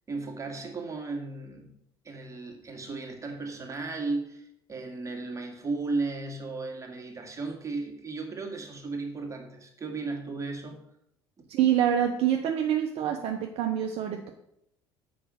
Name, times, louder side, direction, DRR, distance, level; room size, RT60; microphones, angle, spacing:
voice 1, 0.1-1.7 2.0-10.8, right 3 dB, 25° right, 2.1 m, -35 dB
voice 2, 11.5-14.3, right 10 dB, 50° right, 0.8 m, -26 dB
7.7 x 5.1 x 6.4 m
figure-of-eight pair, 60°, 13 cm